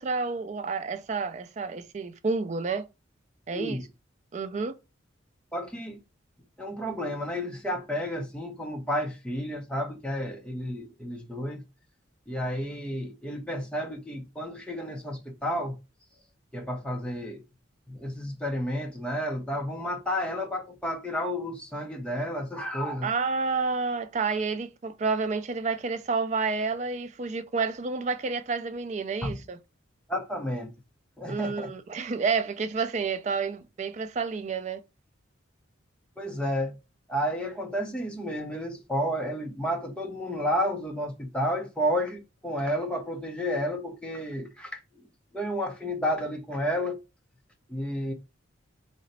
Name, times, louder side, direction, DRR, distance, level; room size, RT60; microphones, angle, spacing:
voice 1, 0.0-2.8 3.5-3.8 4.3-4.7 23.0-29.6 31.3-34.8, right 4 dB, 35° right, 0.3 m, -29 dB
voice 2, 3.5-3.9 5.5-6.0 6.6-11.6 12.3-15.8 16.5-17.4 17.9-23.1 29.2-29.3 30.1-30.7 31.2-31.7 36.2-36.8 37.1-44.8 45.3-47.0 47.7-48.1, equal, 5° left, 0.6 m, -31 dB
3.9 x 2.1 x 4.0 m
head